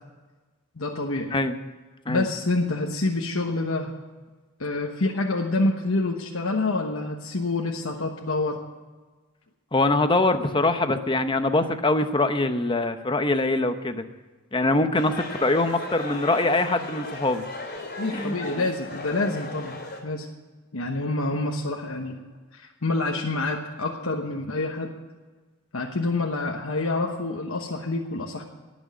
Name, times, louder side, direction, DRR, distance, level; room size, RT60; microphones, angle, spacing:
voice 1, 0.8-1.3 2.1-3.9 4.6-8.6 18.0-20.3 20.7-22.2 22.5-24.9 25.7-28.4, left 2 dB, 75° left, 1 dB, 1.1 m, -27 dB
voice 2, 9.7-14.0 14.5-17.5 18.1-18.4, left 2 dB, 25° left, 9 dB, 0.8 m, -23 dB
sound 1, 15.0-20.0, left 2 dB, 45° left, 2.8 m, -36 dB
18.0 x 6.4 x 9.2 m, 1.3 s
head